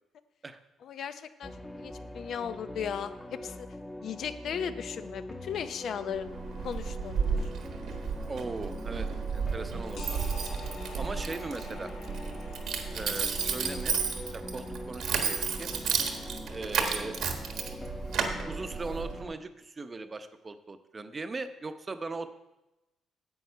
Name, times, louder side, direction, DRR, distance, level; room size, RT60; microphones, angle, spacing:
voice 1, 0.8-3.7 4.0-6.3 6.6-7.5, left 8 dB, 65° left, 11 dB, 0.7 m, -37 dB
sound 1, 1.4-19.3, left 1 dB, 10° left, 0.9 m, -43 dB
Keys jangling, 6.1-19.2, right 6 dB, 75° right, 1.3 m, -33 dB
voice 2, 8.3-9.1 9.3-10.2 11.0-11.9 12.9-14.0 14.2-15.7 16.5-17.2 17.7-17.8 18.5-22.3, right 3 dB, 30° right, 9 dB, 0.8 m, -39 dB
sound 2, 10.0-15.5, left 5 dB, 90° left, 1.8 m, -49 dB
9.4 x 7.9 x 5.6 m, 0.98 s
cardioid pair, 90°, 0 cm